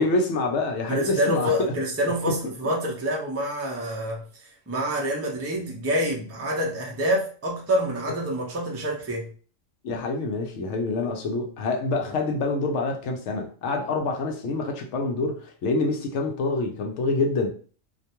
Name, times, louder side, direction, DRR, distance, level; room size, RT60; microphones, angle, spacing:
voice 1, 0.0-1.7 2.3-2.4 9.8-17.5, left 3 dB, 70° left, 0.8 m, -26 dB
voice 2, 0.9-9.3, equal, 25° right, 0.3 m, -27 dB
2.5 x 2.2 x 2.8 m
omnidirectional pair, 1.4 m